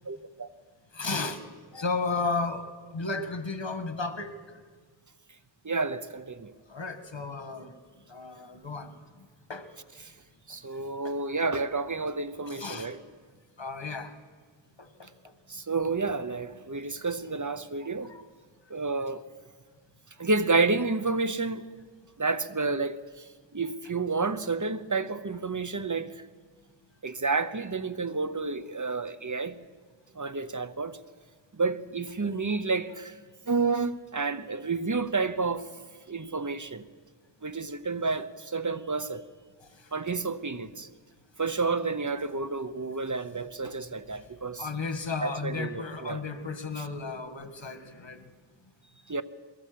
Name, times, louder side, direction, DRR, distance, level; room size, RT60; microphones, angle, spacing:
voice 1, 0.0-0.5 5.6-6.5 10.5-13.0 15.5-18.1 18.7-19.2 20.2-21.6 22.2-23.2 23.5-26.2 27.0-29.6 30.2-31.0 31.5-33.2 33.5-35.7 36.1-36.8 37.4-39.2 39.9-40.9 41.4-44.6 45.2-46.2 49.1-49.2, right 3 dB, 40° right, 1.0 m, -30 dB
voice 2, 0.9-1.4 1.7-4.4 6.7-7.7 8.1-9.7 10.6-10.7 11.0-11.1 12.4-12.9 13.6-14.1 14.8-15.3 16.9-17.0 18.0-18.2 39.6-39.9 44.1-48.3, left 3 dB, 80° left, 1.7 m, -34 dB
22.5 x 18.0 x 7.7 m
wide cardioid pair, 40°, 44 cm